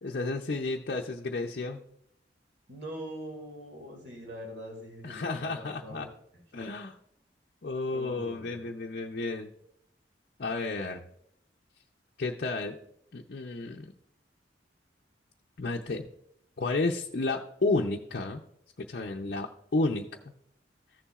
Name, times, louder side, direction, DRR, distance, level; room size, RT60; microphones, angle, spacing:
voice 1, 0.0-1.8 5.0-6.1 6.5-7.0 7.6-9.5 10.4-11.1 12.2-12.8 13.1-13.9 15.6-16.1 16.6-18.4 18.8-20.3, left 3 dB, 55° left, 1 dB, 0.6 m, -32 dB
voice 2, 2.7-6.1 7.9-8.7, equal, 65° right, 1 dB, 2.2 m, -43 dB
15.0 x 7.0 x 2.4 m, 0.73 s
head